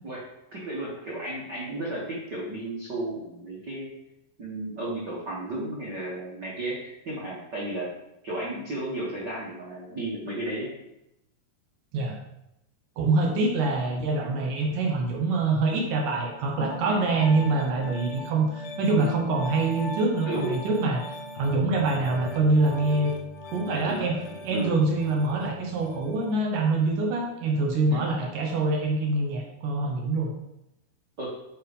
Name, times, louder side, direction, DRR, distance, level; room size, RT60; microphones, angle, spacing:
voice 1, 0.5-3.9 4.4-7.9 8.2-10.7 14.2-14.4 16.9-17.0 20.2-20.6 23.7-24.8 27.9-28.1 31.2-31.3, right 1 dB, 85° right, -5 dB, 0.9 m, -33 dB
voice 2, 13.0-21.0 21.3-23.1 23.5-24.2 24.4-30.3, right 3 dB, 65° right, 1 dB, 2.4 m, -25 dB
Piano, 16.6-26.3, left 1 dB, 70° left, 1.6 m, -39 dB
7.7 x 5.6 x 5.4 m, 0.86 s
omnidirectional pair, 4.7 m